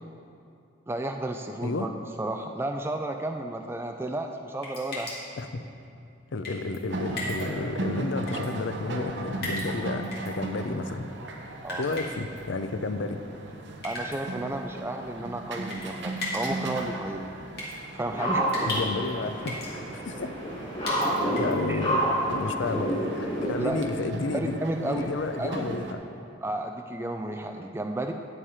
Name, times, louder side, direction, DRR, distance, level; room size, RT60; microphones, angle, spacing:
voice 1, 0.9-1.9 2.2-5.1 11.6-11.8 13.8-17.3 17.9-18.5 21.7-21.8 23.6-24.1 24.3-25.1 25.4-25.7 26.4-28.1, right 1 dB, 10° right, 4 dB, 0.3 m, -32 dB
voice 2, 1.6-1.9 5.4-5.6 6.3-11.1 11.8-13.2 18.6-20.3 21.4-26.0, left 3 dB, 70° left, 8 dB, 0.5 m, -31 dB
sound 1, 4.6-5.4 6.4-6.8 7.2-7.4 8.3-8.5 9.4-10.3 11.6-12.4 13.8-14.2 15.7-15.9 16.2-16.4 16.8-16.9 17.6-17.7 18.5-19.1 19.5-19.7 20.8-21.5, left 1 dB, 50° left, 2.3 m, -35 dB
sound 2, 6.9-25.9, right 2 dB, 65° right, 0.8 m, -38 dB
sound 3, 18.1-23.7, equal, 35° left, 2.6 m, -29 dB
10.0 x 7.3 x 4.8 m, 2.6 s
head